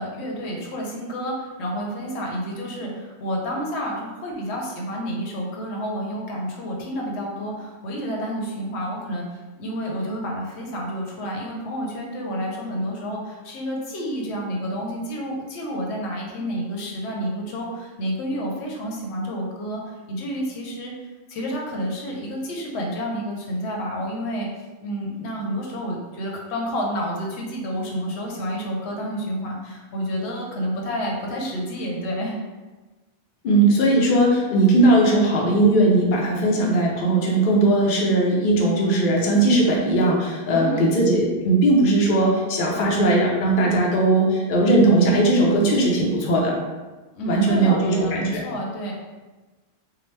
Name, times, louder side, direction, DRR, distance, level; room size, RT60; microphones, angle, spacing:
voice 1, 0.0-20.9 21.3-24.5 24.8-32.4 40.5-40.9 47.1-48.9, equal, 85° left, -1 dB, 0.9 m, -29 dB
voice 2, 33.4-46.6 47.2-48.4, right 2 dB, 55° left, -2 dB, 0.7 m, -19 dB
2.8 x 2.1 x 3.1 m, 1.2 s
omnidirectional pair, 1.1 m